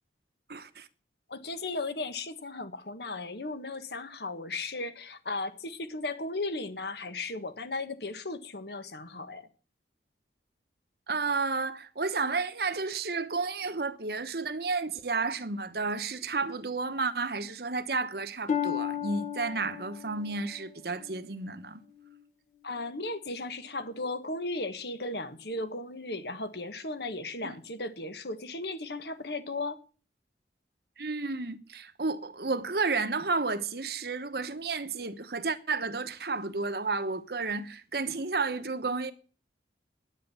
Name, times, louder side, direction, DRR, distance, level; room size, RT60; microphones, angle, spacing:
voice 1, 0.5-0.9 11.1-21.8 27.4-27.6 31.0-39.1, right 4 dB, 60° right, 1.1 m, -32 dB
voice 2, 1.3-9.4 22.6-29.8, left 2 dB, 65° left, 1.5 m, -36 dB
Harp, 18.5-22.2 22.8-23.2 23.8-23.9, left 8 dB, 45° left, 1.3 m, -36 dB
10.0 x 10.0 x 7.0 m
head